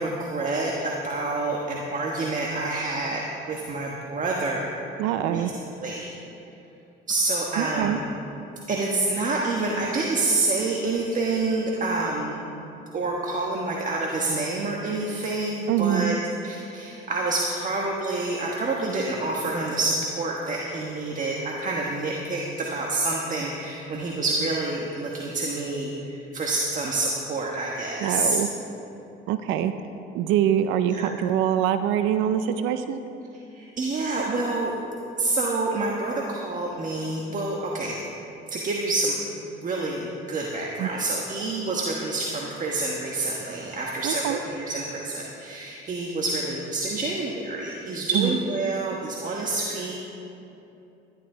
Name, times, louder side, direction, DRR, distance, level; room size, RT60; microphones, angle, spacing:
voice 1, 0.0-3.2 3.5-4.7 5.3-5.4 5.8-6.1 7.1-8.0 8.7-12.4 12.9-16.2 16.4-28.4 30.9-31.1 33.3-34.7 35.2-38.0 38.5-39.1 39.6-49.9, right 2 dB, 40° right, -2 dB, 1.3 m, -27 dB
voice 2, 5.0-5.5 7.6-8.0 15.7-16.2 28.0-28.5 29.3-29.7 30.1-33.0 40.8-40.9 44.0-44.4 48.2-48.3, right 10 dB, 85° right, 10 dB, 0.5 m, -24 dB
12.0 x 11.0 x 3.8 m, 2.9 s
cardioid pair, 90°, 20 cm